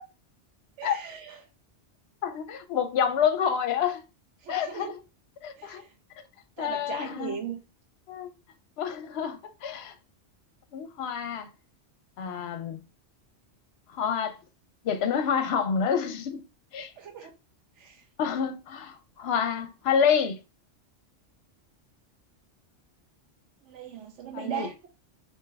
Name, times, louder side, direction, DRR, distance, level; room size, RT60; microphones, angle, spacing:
voice 1, 0.8-1.4 4.4-5.0 5.6-5.9 6.6-7.6 17.0-17.3 17.8-18.0 23.6-24.9, right 8 dB, 90° right, 1.0 m, -38 dB
voice 2, 2.2-4.0 4.5-5.0 5.4-5.8 6.6-7.4 8.1-8.3 8.8-9.9 10.7-11.5 12.2-12.8 13.9-14.4 14.8-16.4 16.7-16.9 18.2-20.4 24.3-24.7, left 7 dB, 65° left, 0.8 m, -28 dB
3.4 x 2.9 x 3.3 m
omnidirectional pair, 1.2 m